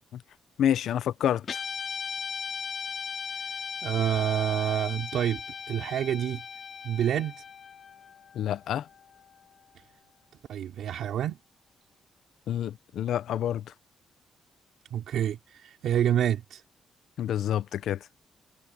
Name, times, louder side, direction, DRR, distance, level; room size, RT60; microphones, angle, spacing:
voice 1, 0.6-1.6 8.3-8.9 12.5-13.7 17.2-18.0, left 10 dB, 80° left, 0.8 m, -28 dB
Guitar, 1.4-9.9, left 6 dB, 50° left, 2.8 m, -38 dB
voice 2, 3.8-5.4 5.7-6.4 6.8-7.4 10.5-11.4 14.9-16.6, right 10 dB, 80° right, 3.5 m, -28 dB
cardioid pair, 120°, 0 cm